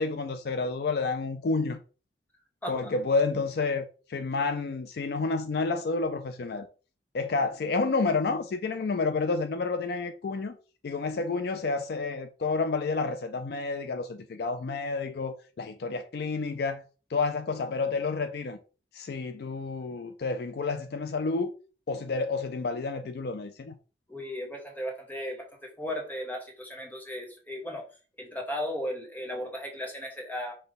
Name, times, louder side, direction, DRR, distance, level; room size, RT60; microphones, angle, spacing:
voice 1, 0.0-1.8 2.7-6.7 7.1-10.6 10.8-16.8 17.1-18.6 18.9-21.5 21.9-23.7, left 4 dB, 60° left, 0.4 m, -30 dB
voice 2, 24.1-27.9 28.2-30.5, equal, 10° left, 1.2 m, -36 dB
5.3 x 2.2 x 4.0 m
head